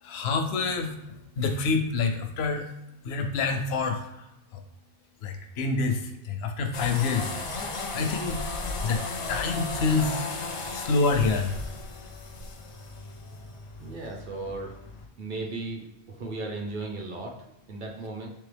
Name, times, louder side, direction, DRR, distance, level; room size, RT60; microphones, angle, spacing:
voice 1, 0.0-1.0 1.4-2.7 3.0-4.6 5.2-7.4 7.9-8.5 8.8-10.3 10.7-11.6, left 4 dB, 80° left, 5 dB, 0.8 m, -27 dB
sound 1, 6.7-15.1, left 3 dB, 50° left, 0.4 m, -35 dB
voice 2, 13.1-14.8 15.2-15.8 16.1-17.4 17.7-18.3, right 2 dB, 55° right, -1 dB, 0.8 m, -36 dB
3.6 x 3.2 x 3.3 m, 0.91 s
omnidirectional pair, 1.1 m